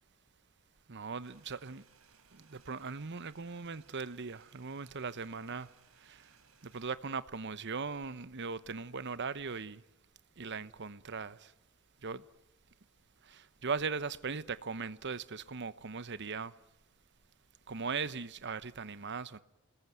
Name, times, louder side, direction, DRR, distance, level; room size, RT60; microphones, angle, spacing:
voice 1, 0.9-1.8 2.3-5.7 6.0-6.3 6.6-9.8 10.4-11.5 12.0-12.2 13.3-16.5 17.7-19.4, right 5 dB, 55° right, 1.0 m, -39 dB
sound 1, 1.2-7.0, right 6 dB, 85° right, 3.5 m, -65 dB
28.5 x 21.0 x 9.4 m
head